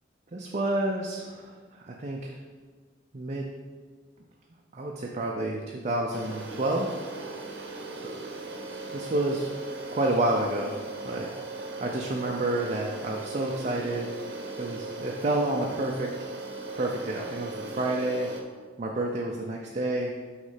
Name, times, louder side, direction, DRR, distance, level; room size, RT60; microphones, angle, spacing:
voice 1, 0.3-2.3 3.1-3.5 4.7-7.0 8.0-8.2 8.9-9.5 9.9-10.8 11.0-11.3 11.8-14.1 14.6-16.1 16.7-18.3 18.8-20.1, right 2 dB, 35° right, -1 dB, 0.5 m, -29 dB
sound 1, 6.1-18.4, right 3 dB, 65° right, 0.8 m, -38 dB
6.2 x 3.2 x 5.6 m, 1.5 s
head